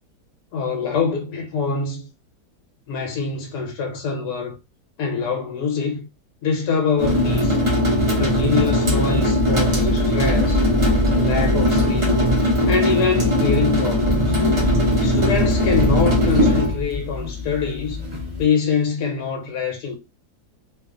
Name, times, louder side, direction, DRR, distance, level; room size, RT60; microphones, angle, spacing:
voice 1, 0.5-2.1 2.9-4.6 5.0-6.1 6.4-7.6 8.2-10.6 11.1-12.2 12.7-14.4 15.0-18.0 18.4-20.0, left 5 dB, 90° left, 1.2 m, -24 dB
sound 1, 7.0-18.4, left 1 dB, 35° right, 0.5 m, -19 dB
2.7 x 2.3 x 2.4 m
omnidirectional pair, 1.7 m